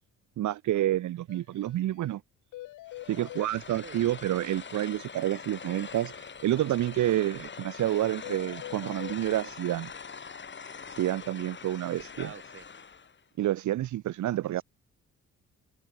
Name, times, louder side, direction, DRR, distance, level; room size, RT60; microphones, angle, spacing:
voice 1, 0.4-2.2 3.1-9.9 10.9-12.3 13.4-14.6, right 13 dB, 75° right, 1.5 m, -29 dB
sound 1, 1.3-1.4 1.7-1.8 2.0-2.1 2.5-3.5 8.2-9.2, left 16 dB, 85° left, 1.5 m, -43 dB
sound 2, 2.9-13.2, left 5 dB, 40° left, 6.7 m, -43 dB
voice 2, 12.1-12.6 14.4-14.6, right 6 dB, 45° right, 6.5 m, -47 dB
cardioid pair, 90°, 30 cm